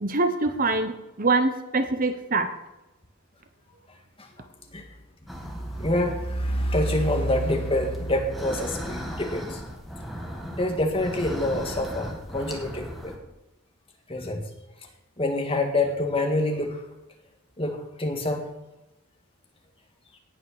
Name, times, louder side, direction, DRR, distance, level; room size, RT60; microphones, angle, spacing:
voice 1, 0.0-2.5, right 3 dB, 40° right, 8 dB, 0.9 m, -24 dB
sound 1, 5.3-13.2, equal, ahead, 1.9 m, -38 dB
voice 2, 5.6-9.6 10.5-13.1 14.1-14.4 15.2-16.8 17.6-18.5, left 1 dB, 25° left, 3 dB, 1.9 m, -26 dB
18.0 x 6.6 x 6.6 m, 0.96 s
head